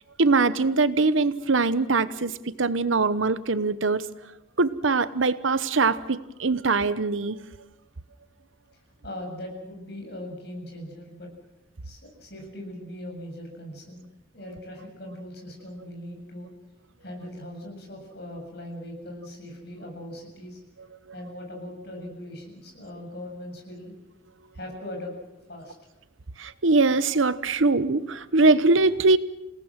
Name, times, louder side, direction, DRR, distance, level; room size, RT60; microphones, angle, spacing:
voice 1, 0.2-4.1 4.6-7.4 26.4-29.2, right 3 dB, 85° right, 15 dB, 1.0 m, -22 dB
voice 2, 9.0-11.3 11.8-16.5 17.0-20.6 21.1-23.9 24.5-25.1 25.5-25.7, left 1 dB, 55° left, 1 dB, 7.6 m, -40 dB
28.5 x 18.5 x 7.5 m, 0.98 s
head